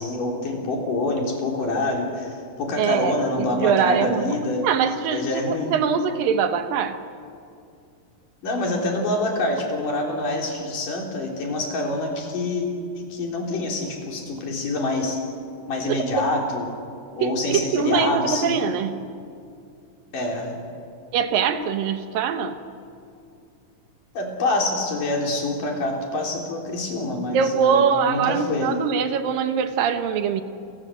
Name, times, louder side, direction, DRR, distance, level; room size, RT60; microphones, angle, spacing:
voice 1, 0.0-4.7 5.1-5.8 8.4-12.7 13.0-15.2 15.7-16.7 17.2-18.7 20.1-20.6 24.2-28.8, left 2 dB, 70° left, 1 dB, 5.4 m, -26 dB
voice 2, 2.8-4.3 4.6-7.0 15.9-16.0 17.2-19.0 21.1-22.6 27.3-30.4, right 7 dB, 80° right, 8 dB, 3.0 m, -23 dB
30.0 x 23.0 x 7.8 m, 2.4 s
omnidirectional pair, 3.9 m